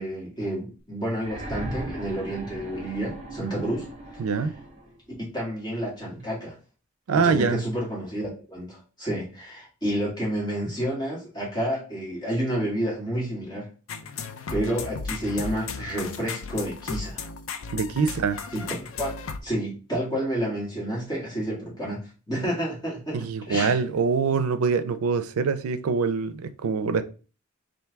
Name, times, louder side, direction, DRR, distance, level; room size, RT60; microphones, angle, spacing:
voice 1, 0.0-3.9 4.1-4.2 5.2-6.5 7.1-13.7 14.5-17.3 18.5-19.1 19.4-23.8, right 1 dB, 20° left, 1.8 m, -30 dB
sound 1, 1.2-5.0 6.2-6.3, right 1 dB, 30° right, 1.0 m, -38 dB
voice 2, 4.2-4.5 7.1-7.6 17.7-18.4 23.1-27.0, right 5 dB, 85° right, 0.4 m, -24 dB
sound 2, 13.9-19.4, left 5 dB, 65° left, 0.4 m, -35 dB
4.5 x 2.6 x 3.4 m
head